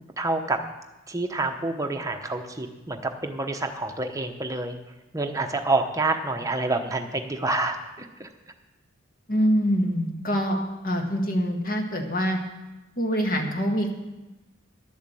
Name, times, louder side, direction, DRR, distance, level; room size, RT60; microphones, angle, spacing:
voice 1, 0.2-0.6 1.1-4.8 5.1-8.3, right 2 dB, 15° right, 4 dB, 0.9 m, -28 dB
voice 2, 9.3-10.6 10.8-12.4 13.0-13.9, equal, 45° left, 3 dB, 1.6 m, -24 dB
11.5 x 7.3 x 7.6 m, 1.0 s
head